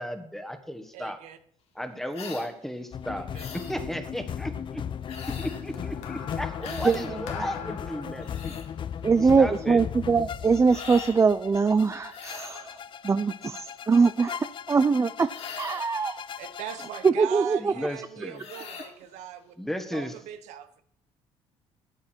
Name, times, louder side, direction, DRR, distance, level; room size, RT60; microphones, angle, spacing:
voice 1, 0.0-1.2 1.7-4.8 5.4-8.6 9.4-9.8 17.6-18.4 19.6-20.1, equal, 5° left, 7 dB, 1.4 m, -34 dB
voice 2, 0.9-1.4 3.1-3.6 16.4-19.5 19.9-20.8, right 10 dB, 80° right, 10 dB, 1.0 m, -40 dB
sound 1, 2.1-2.5 3.3-3.8 5.1-5.7 6.6-7.1 8.0-8.7 10.7-11.2 12.1-12.6 15.3-15.9 18.4-18.9, left 6 dB, 60° left, 1.8 m, -41 dB
sound 2, 2.9-17.1, left 8 dB, 45° left, 0.5 m, -37 dB
sound 3, 5.7-10.2 11.1-11.3, left 8 dB, 85° left, 1.5 m, -42 dB
voice 3, 6.8-7.2 9.0-12.8 13.0-15.3 15.6-16.2 17.0-17.7, right 5 dB, 25° right, 12 dB, 0.5 m, -23 dB
12.0 x 8.5 x 4.5 m, 0.65 s
supercardioid pair, 80°, 12 cm